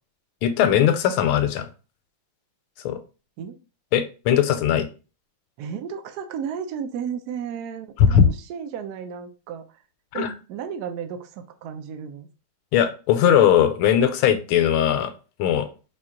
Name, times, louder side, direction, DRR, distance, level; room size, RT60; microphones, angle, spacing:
voice 1, 0.4-1.7 2.8-3.0 3.9-4.9 8.0-8.3 10.1-10.3 12.7-15.1 15.4-15.7, left 9 dB, 90° left, 9 dB, 1.4 m, -19 dB
voice 2, 5.6-9.6 10.1-12.3, right 7 dB, 75° right, 6 dB, 0.9 m, -33 dB
4.3 x 2.4 x 3.7 m, 0.33 s
omnidirectional pair, 2.3 m